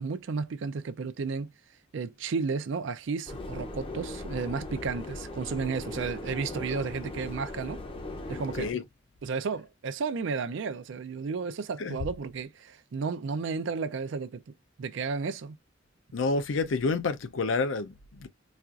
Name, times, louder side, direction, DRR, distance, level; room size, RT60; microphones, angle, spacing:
voice 1, 0.0-1.5 1.9-7.8 8.3-8.7 9.2-14.4 14.8-15.6, right 5 dB, 70° right, 0.4 m, -33 dB
Subway metro underground, 3.3-8.7, left 2 dB, 30° left, 0.6 m, -38 dB
voice 2, 16.1-18.3, left 3 dB, 75° left, 0.5 m, -29 dB
4.2 x 2.4 x 2.4 m
head